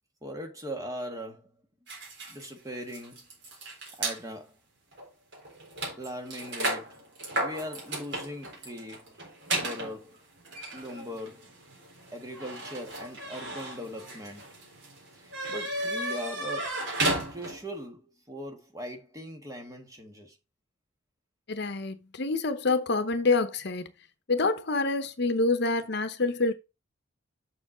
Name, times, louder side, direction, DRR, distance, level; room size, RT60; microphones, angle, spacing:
voice 1, 0.2-1.5 2.3-3.2 3.5-4.6 6.0-7.0 7.3-9.2 9.6-10.2 10.7-11.5 12.1-14.5 15.1-16.8 17.3-20.4, equal, 15° right, 1.5 m, -40 dB
sound 1, 1.9-4.2 4.9-5.1 5.3-17.8, right 1 dB, 60° right, 3.9 m, -35 dB
voice 2, 21.5-23.9 24.3-26.5, left 3 dB, 55° left, 0.8 m, -27 dB
7.0 x 6.3 x 3.9 m
head